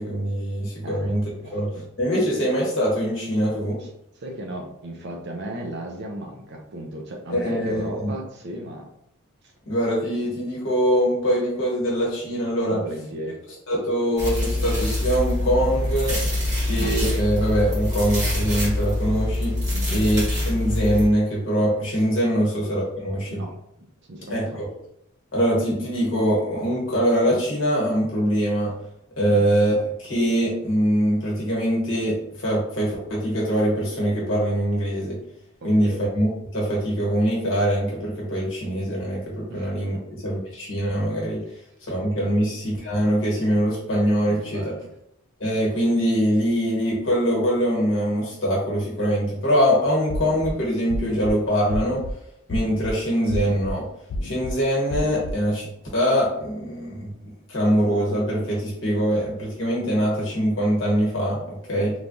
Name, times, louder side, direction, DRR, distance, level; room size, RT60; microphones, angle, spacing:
voice 1, 0.0-1.2 1.5-1.7 2.0-3.8 7.3-8.1 9.7-12.8 13.7-16.2 16.7-19.5 19.9-23.4 24.3-24.7 25.3-28.7 29.2-35.2 35.6-36.3 36.5-40.0 40.2-41.4 41.9-44.6 45.4-52.0 52.5-53.8 54.2-55.7 55.9-57.1 57.5-61.9, equal, 55° left, -4 dB, 1.2 m, -23 dB
voice 2, 1.4-1.8 3.8-3.9 4.2-8.9 9.4-9.5 12.7-13.4 19.7-20.0 23.3-23.5 24.1-24.6 29.3-29.4 35.6-36.0 39.5-40.0 42.1-42.3 44.3-44.9 61.7-61.9, right 1 dB, 50° right, 1 dB, 0.5 m, -36 dB
sound 1, 14.2-21.1, left 1 dB, 30° right, 1.4 m, -25 dB
sound 2, 50.1-50.5 50.9-51.3 51.7-52.1 52.5-52.9 53.3-53.7 54.1-54.5 54.9-55.3, left 1 dB, 75° left, 0.3 m, -30 dB
3.2 x 2.2 x 2.5 m, 0.76 s
head